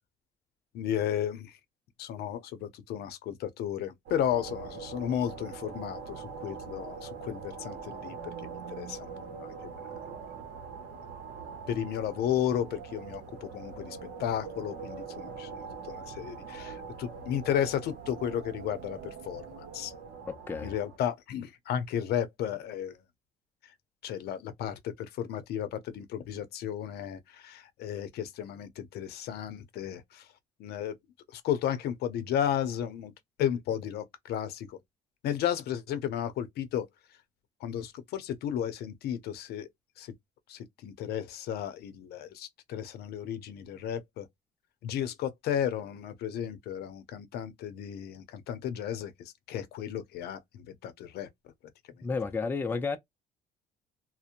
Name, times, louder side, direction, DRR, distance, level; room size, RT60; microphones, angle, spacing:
voice 1, 0.7-1.6 2.0-8.2 8.4-9.1 9.4-9.5 11.7-19.0 19.3-19.9 20.6-23.0 24.0-30.3 30.6-30.9 31.3-33.1 33.4-34.8 35.2-36.9 37.6-39.7 40.0-40.1 40.5-44.3 44.8-49.1 49.5-51.3, left 10 dB, 70° left, 0.6 m, -33 dB
sound 1, 4.1-21.0, right 5 dB, 75° right, 0.8 m, -43 dB
voice 2, 20.3-20.7 52.0-53.0, left 4 dB, 10° left, 0.4 m, -31 dB
2.8 x 2.0 x 2.4 m
cardioid pair, 110°, 17 cm